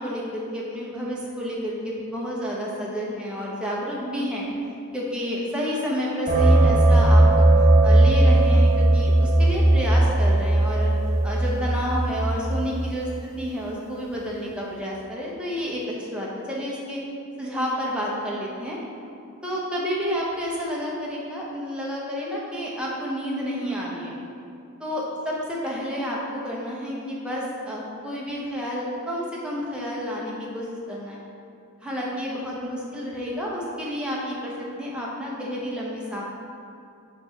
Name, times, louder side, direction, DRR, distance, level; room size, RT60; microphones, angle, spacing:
voice 1, 0.0-4.5 4.9-10.9 11.2-17.0 17.4-18.8 19.4-24.1 24.8-31.2 31.8-36.2, equal, 5° right, -5 dB, 0.8 m, -30 dB
sound 1, 6.3-12.8, right 1 dB, 30° right, 0.8 m, -18 dB
5.9 x 3.2 x 5.1 m, 2.5 s
head